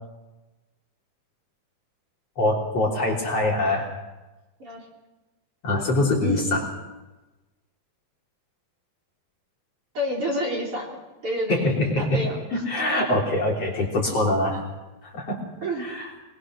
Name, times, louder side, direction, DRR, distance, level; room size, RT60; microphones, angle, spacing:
voice 1, 2.4-3.9 5.6-6.7 11.5-12.2 12.5-14.6 15.0-15.4 15.8-16.1, left 1 dB, 40° left, -2 dB, 4.3 m, -24 dB
voice 2, 6.2-6.5 9.9-11.0 11.2-11.7 12.0-12.6 15.6-15.9, equal, 35° right, -2 dB, 4.3 m, -29 dB
25.0 x 22.0 x 6.3 m, 1.1 s
omnidirectional pair, 4.5 m